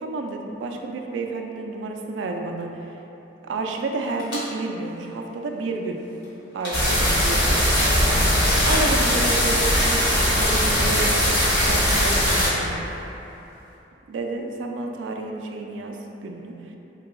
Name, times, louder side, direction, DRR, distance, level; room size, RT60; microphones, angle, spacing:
voice 1, 0.0-2.9 3.4-6.0 6.5-7.7 8.0-10.1 10.4-12.7 14.1-16.7, right 3 dB, 85° right, 2 dB, 0.3 m, -30 dB
sound 1, 4.0-4.4 4.8-5.0 6.2-6.3 6.5-6.9 7.4-7.8 8.2-8.3 8.5-8.9 10.1-10.2 11.3-13.1, left 1 dB, 80° left, 1.2 m, -31 dB
sound 2, 6.7-12.5, equal, 55° left, 1.1 m, -20 dB
3.1 x 2.2 x 4.1 m, 3.0 s
head